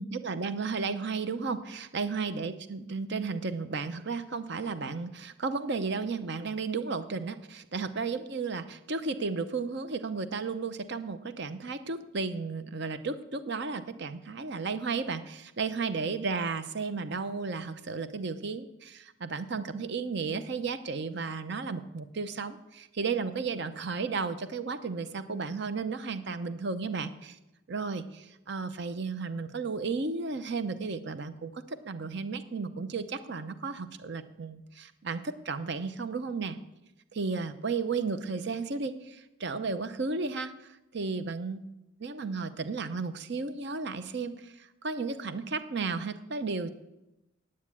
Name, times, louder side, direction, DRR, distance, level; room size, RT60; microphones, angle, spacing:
voice 1, 0.0-27.4 27.7-36.6 37.1-40.5 40.9-41.6 42.0-46.7, right 4 dB, 55° right, 11 dB, 0.7 m, -34 dB
9.5 x 8.6 x 8.4 m, 0.95 s
head